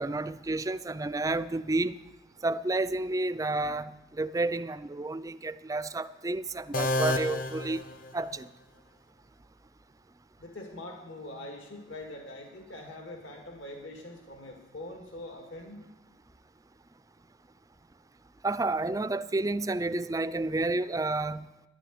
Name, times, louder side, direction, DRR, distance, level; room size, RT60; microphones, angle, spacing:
voice 1, 0.0-2.0 2.4-7.8 8.1-8.5 18.4-21.5, right 2 dB, 15° right, 15 dB, 0.4 m, -30 dB
sound 1, 6.7-8.6, left 2 dB, 45° left, 0.8 m, -31 dB
voice 2, 10.4-15.9, left 1 dB, 70° left, 2 dB, 2.1 m, -43 dB
11.0 x 9.9 x 9.3 m, 1.0 s
head